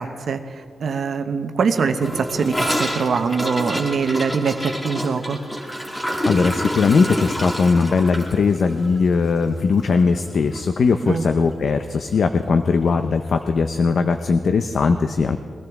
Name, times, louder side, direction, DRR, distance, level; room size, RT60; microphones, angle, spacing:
voice 1, 0.0-5.4 11.0-11.3, right 5 dB, 60° right, 7 dB, 0.8 m, -23 dB
Gurgling / Toilet flush, 2.0-10.3 10.5-10.7 11.0-11.4 11.7-11.8 12.1-12.2 13.1-13.2, equal, 10° left, 1.8 m, -28 dB
voice 2, 6.0-15.4, left 4 dB, 55° left, 8 dB, 0.5 m, -19 dB
21.5 x 14.0 x 3.5 m, 2.1 s
wide cardioid pair, 135°, 0 cm